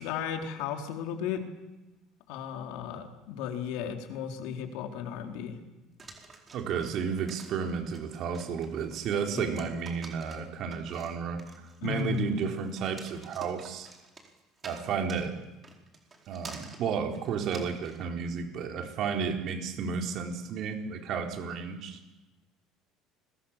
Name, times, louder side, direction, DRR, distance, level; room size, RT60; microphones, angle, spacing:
voice 1, 0.0-1.4 2.3-5.6 9.3-9.7 11.8-12.3, left 8 dB, 80° left, 4 dB, 4.0 m, -35 dB
sound 1, 6.0-18.0, right 3 dB, 20° right, 4.5 m, -49 dB
voice 2, 6.5-11.4 11.8-13.9 14.6-15.3 16.3-22.0, right 6 dB, 50° right, 4 dB, 4.0 m, -32 dB
29.5 x 23.5 x 7.5 m, 1.1 s
cardioid pair, 150°, 0 cm